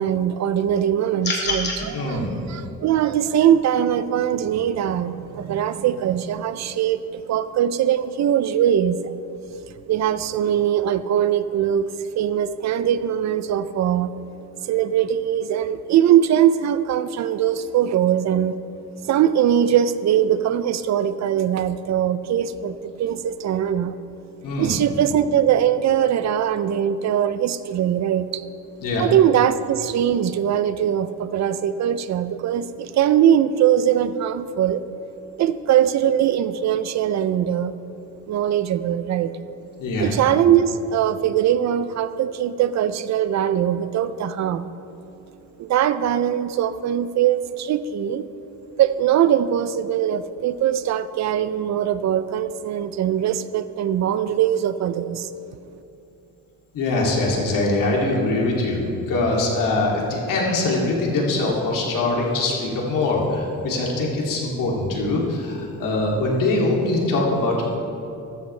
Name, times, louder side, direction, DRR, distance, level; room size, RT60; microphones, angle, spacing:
voice 1, 0.0-9.1 9.9-14.1 14.6-18.6 19.0-24.0 24.6-28.5 29.0-34.8 35.4-37.7 38.3-39.3 40.0-44.7 45.6-48.3 48.8-55.3, right 10 dB, 55° right, 13 dB, 0.5 m, -21 dB
sound 1, 1.2-1.8, left 3 dB, 30° left, 2.1 m, -25 dB
voice 2, 1.9-2.3 24.4-24.7 28.8-29.0 39.8-40.1 56.7-67.8, left 2 dB, 75° left, -2 dB, 2.6 m, -23 dB
14.0 x 13.0 x 3.3 m, 2.8 s
cardioid pair, 155°, 33 cm